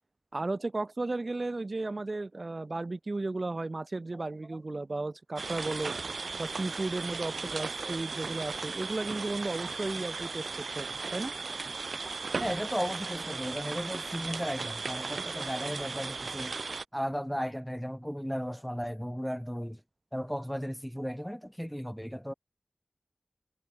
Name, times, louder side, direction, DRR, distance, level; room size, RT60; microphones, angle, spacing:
voice 1, 0.3-5.9 6.4-10.5 10.7-10.9 11.1-11.3, right 2 dB, 45° right, 1.3 m, -34 dB
sound 1, 5.4-16.8, right 4 dB, 85° right, 3.8 m, -36 dB
voice 2, 12.4-16.5 16.9-19.8 20.1-22.3, equal, ahead, 5.0 m, -35 dB
wide cardioid pair, 85°, 0 cm